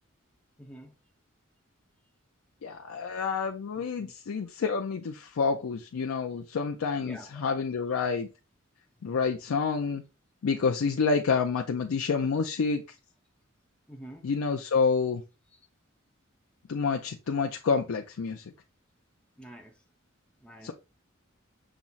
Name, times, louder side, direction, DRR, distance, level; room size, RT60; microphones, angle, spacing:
voice 1, 0.6-0.9 3.8-4.1 7.0-7.4 13.9-14.3 19.4-19.7 20.4-20.7, right 1 dB, 5° left, 0.7 m, -47 dB
voice 2, 2.6-8.3 9.0-10.0 10.4-12.8 14.2-15.2 16.7-18.4 20.6-20.7, left 5 dB, 85° left, 0.4 m, -28 dB
5.8 x 2.0 x 3.9 m
head